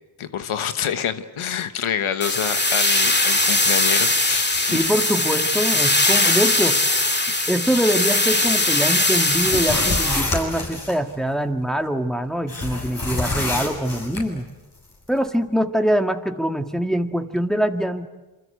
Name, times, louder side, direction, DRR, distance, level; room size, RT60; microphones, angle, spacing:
voice 1, 0.2-4.9, left 8 dB, 85° left, 10 dB, 1.2 m, -27 dB
sound 1, 2.2-10.2, left 2 dB, 20° left, 2.1 m, -20 dB
voice 2, 4.7-6.9 7.5-14.5 15.1-18.1, equal, ahead, 5 dB, 1.9 m, -23 dB
sound 2, 9.3-11.0 12.5-14.2, left 2 dB, 45° left, 7.9 m, -27 dB
27.5 x 24.0 x 8.1 m, 1.1 s
cardioid pair, 45°, 48 cm